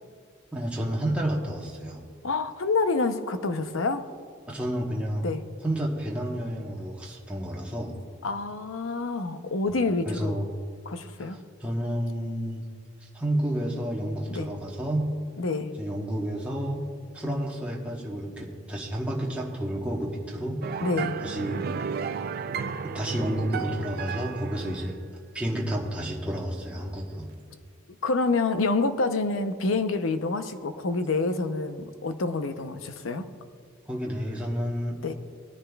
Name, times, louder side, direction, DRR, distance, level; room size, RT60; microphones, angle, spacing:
voice 1, 0.5-2.0 4.5-5.3 5.6-8.0 10.0-10.5 11.2-12.7 13.1-15.1 15.8-16.9 17.1-20.6 21.2-21.6 22.8-25.0 25.3-27.3 33.9-35.1, right 1 dB, 5° right, -3 dB, 1.1 m, -30 dB
voice 2, 2.2-4.1 5.2-5.4 8.2-10.3 10.9-11.4 14.3-14.5 15.4-15.7 20.8-21.2 28.0-33.3 35.0-35.1, left 3 dB, 85° left, 9 dB, 0.7 m, -27 dB
sound 1, 20.6-25.0, right 6 dB, 50° right, 0.3 m, -33 dB
19.5 x 10.0 x 2.3 m, 2.1 s
head